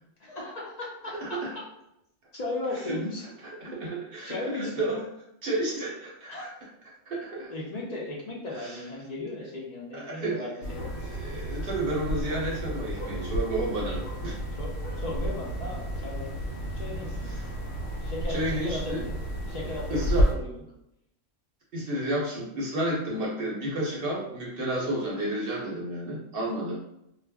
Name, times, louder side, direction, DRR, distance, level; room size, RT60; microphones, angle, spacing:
voice 1, 0.2-1.6 2.3-3.2 3.7-3.8 4.2-4.9 6.3-6.5 7.5-11.2 14.6-14.7 15.0-16.3 16.7-17.3 18.0-19.2 19.5-20.6, left 2 dB, 55° left, -4 dB, 0.4 m, -36 dB
voice 2, 1.2-1.5 2.7-3.0 3.6-5.0 5.4-6.3 7.1-7.5 8.5-8.8 9.9-10.5 11.0-14.4 17.2-17.4 18.3-19.0 19.9-20.3 21.7-26.8, right 1 dB, 55° right, -4 dB, 0.7 m, -31 dB
sound 1, 10.6-20.3, equal, 75° left, 1.0 m, -31 dB
2.4 x 2.0 x 3.4 m, 0.81 s
omnidirectional pair, 1.4 m